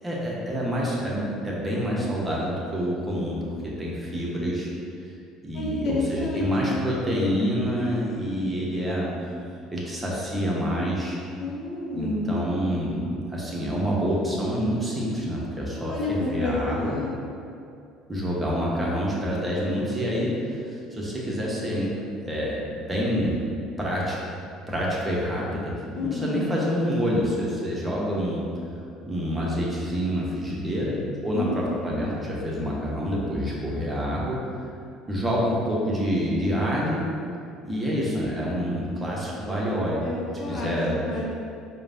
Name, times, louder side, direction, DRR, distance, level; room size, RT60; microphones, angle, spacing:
voice 1, 0.0-4.7 5.4-9.1 9.7-11.2 11.9-17.0 18.1-21.9 22.2-23.3 23.8-24.2 24.7-25.7 26.0-28.4 29.0-34.4 35.1-37.0 37.6-40.1 40.5-41.0, equal, 20° right, -5 dB, 0.9 m, -27 dB
voice 2, 5.5-6.8 11.4-12.4 15.8-17.1 25.9-26.4 31.3-31.8 40.0-40.8 41.0-41.2, left 2 dB, 50° left, -3 dB, 0.6 m, -29 dB
4.9 x 2.2 x 2.6 m, 2.5 s
figure-of-eight pair, 60°, 0 cm